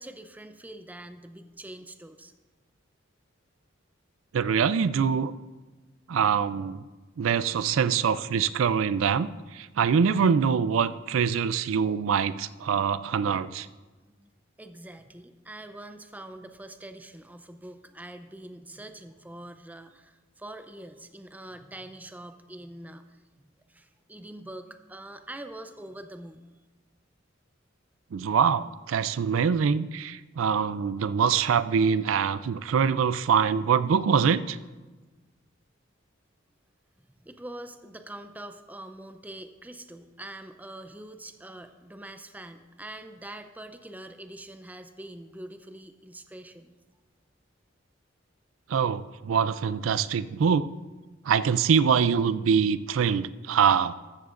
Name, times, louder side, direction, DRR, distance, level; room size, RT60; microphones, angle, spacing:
voice 1, 0.0-2.3 14.2-14.3 14.6-23.2 23.7-26.5 37.1-46.8, right 1 dB, 10° right, 8 dB, 0.5 m, -44 dB
voice 2, 4.3-5.3 6.1-6.8 7.2-13.7 28.1-34.6 48.7-50.7 51.3-53.9, right 6 dB, 85° right, 15 dB, 0.4 m, -24 dB
14.0 x 14.0 x 2.5 m, 1.2 s
head